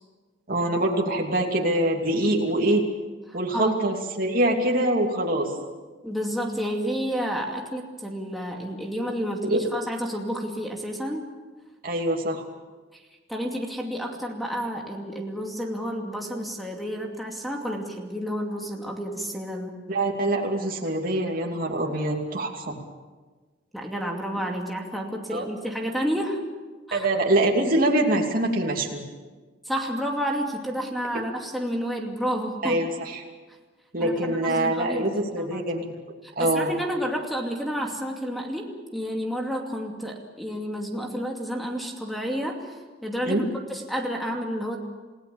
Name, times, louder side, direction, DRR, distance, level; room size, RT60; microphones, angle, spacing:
voice 1, 0.5-2.8 3.3-5.5 9.5-9.6 11.8-12.4 19.9-22.8 25.3-25.5 26.9-29.0 32.6-33.2 33.9-35.9 36.4-36.7 43.3-43.4, right 1 dB, 50° right, 0 dB, 2.9 m, -24 dB
voice 2, 3.3-3.8 6.0-11.3 12.9-13.0 13.3-19.8 23.7-26.4 26.9-27.1 29.7-32.8 34.0-35.7 36.2-43.4 43.7-44.8, equal, ahead, 1 dB, 2.5 m, -30 dB
29.5 x 17.0 x 7.2 m, 1.3 s
head